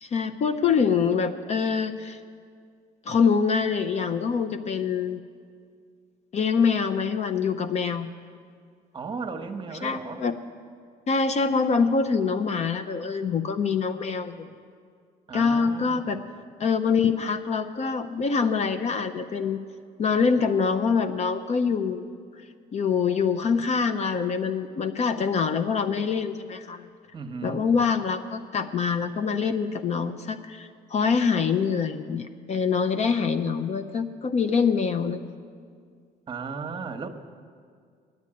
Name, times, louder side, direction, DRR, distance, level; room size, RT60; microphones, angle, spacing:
voice 1, 0.0-2.2 3.1-5.2 6.3-8.1 9.8-10.3 11.1-14.5 15.3-16.2 16.6-19.6 20.0-22.1 22.7-26.9 27.4-35.2, left 5 dB, 40° left, 9 dB, 0.5 m, -25 dB
voice 2, 8.9-10.3 15.3-16.2 27.1-27.7 36.3-37.1, right 4 dB, 30° right, 6 dB, 0.9 m, -35 dB
9.7 x 9.4 x 8.6 m, 2.1 s
cardioid pair, 110°, 17 cm